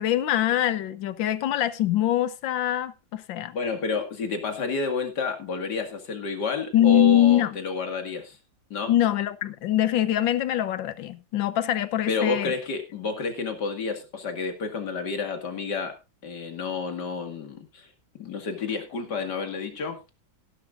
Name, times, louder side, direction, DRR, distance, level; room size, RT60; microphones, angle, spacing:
voice 1, 0.0-3.5 6.7-7.6 8.9-12.5, left 12 dB, 80° left, 1.6 m, -23 dB
voice 2, 3.5-8.4 8.7-8.9 12.1-16.0 16.2-17.9 18.2-20.0, left 4 dB, 60° left, 2.6 m, -30 dB
17.0 x 11.0 x 2.5 m
omnidirectional pair, 2.1 m